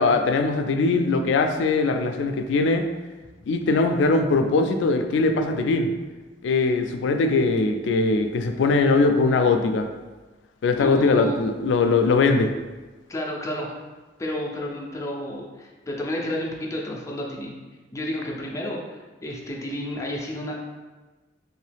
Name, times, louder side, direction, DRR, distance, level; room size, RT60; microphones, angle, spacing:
voice 1, 0.0-2.9 3.5-5.9 6.4-9.9 10.6-12.5, left 3 dB, 80° left, 6 dB, 0.3 m, -21 dB
voice 2, 10.8-11.4 13.1-13.7 14.2-17.6 17.9-20.6, left 1 dB, 15° left, -2 dB, 0.5 m, -31 dB
3.0 x 2.7 x 3.3 m, 1.2 s
head